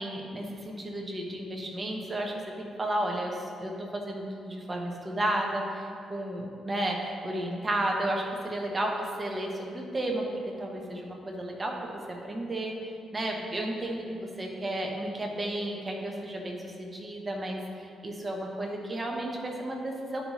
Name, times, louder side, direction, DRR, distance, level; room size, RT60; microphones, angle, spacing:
voice 1, 0.0-10.3 10.6-20.2, right 1 dB, 20° right, 0 dB, 1.0 m, -33 dB
11.0 x 5.5 x 3.0 m, 2.4 s
cardioid pair, 130°, 0 cm